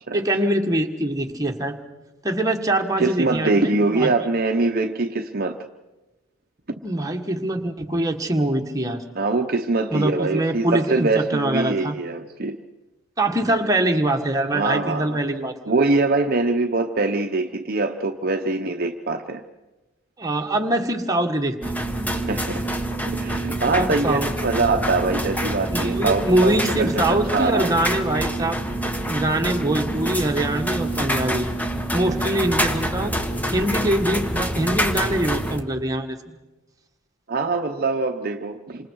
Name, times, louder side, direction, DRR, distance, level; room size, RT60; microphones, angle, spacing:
voice 1, 0.1-1.8 2.2-4.1 6.8-9.0 9.9-12.0 13.2-15.6 20.2-21.7 23.7-24.3 25.7-28.6 29.1-31.5 31.9-33.2 33.5-36.4, right 1 dB, 15° right, 3 dB, 1.7 m, -23 dB
voice 2, 3.0-5.6 9.2-12.6 14.5-15.2 15.7-19.4 22.2-22.6 23.1-27.7 32.1-32.2 37.3-38.9, right 3 dB, 45° right, 5 dB, 0.9 m, -23 dB
sound 1, 21.6-35.6, right 1 dB, 5° left, 1.3 m, -26 dB
29.0 x 26.5 x 4.7 m, 1.1 s
head